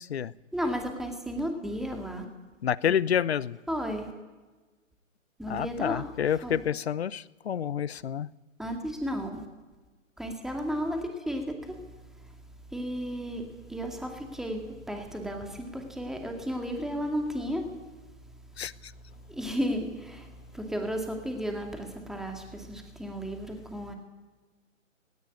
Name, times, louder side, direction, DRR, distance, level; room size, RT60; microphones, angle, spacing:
voice 1, 0.0-0.3 2.6-3.6 5.5-8.3 18.6-18.7, left 9 dB, 50° left, 0.8 m, -28 dB
voice 2, 0.5-2.3 2.8-2.9 3.7-4.1 5.4-6.1 6.4-6.6 8.6-9.5 10.2-11.8 12.1-12.3 12.7-17.7 19.3-23.9, equal, ahead, 2.3 m, -33 dB
19.0 x 17.5 x 9.7 m
figure-of-eight pair, 135°, 39 cm